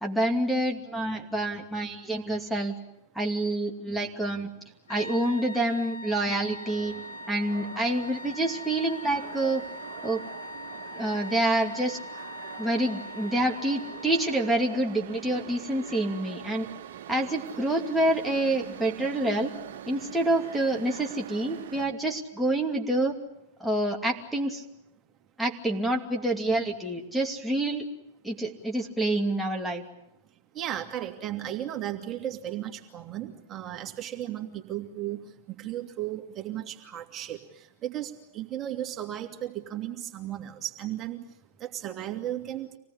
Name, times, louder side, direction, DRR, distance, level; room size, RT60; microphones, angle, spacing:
voice 1, 0.0-2.7 3.1-4.5 4.9-7.0 7.3-9.6 10.0-10.2 10.9-12.0 12.6-16.7 17.1-19.5 19.9-23.1 23.6-24.6 25.4-27.8 28.2-29.8, right 1 dB, 5° right, -1 dB, 2.6 m, -27 dB
sound 1, 4.9-14.9, left 1 dB, 85° left, 2.4 m, -42 dB
sound 2, 6.6-21.9, right 10 dB, 65° right, 1.6 m, -43 dB
voice 2, 30.5-37.4 37.8-41.2 41.6-42.7, right 12 dB, 35° right, 3 dB, 2.6 m, -35 dB
26.5 x 18.0 x 9.8 m, 0.88 s
hypercardioid pair, 105°, 0 cm